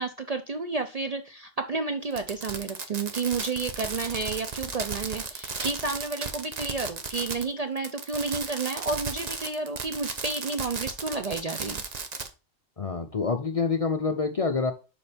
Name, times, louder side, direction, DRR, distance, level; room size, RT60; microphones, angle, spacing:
voice 1, 0.0-11.8, right 3 dB, 65° right, 7 dB, 0.3 m, -31 dB
Fireworks, 2.1-7.5 7.8-12.3, right 4 dB, 40° right, 0.7 m, -35 dB
voice 2, 12.8-14.7, left 4 dB, 45° left, 6 dB, 0.4 m, -27 dB
6.9 x 5.1 x 3.4 m, 0.31 s
omnidirectional pair, 1.3 m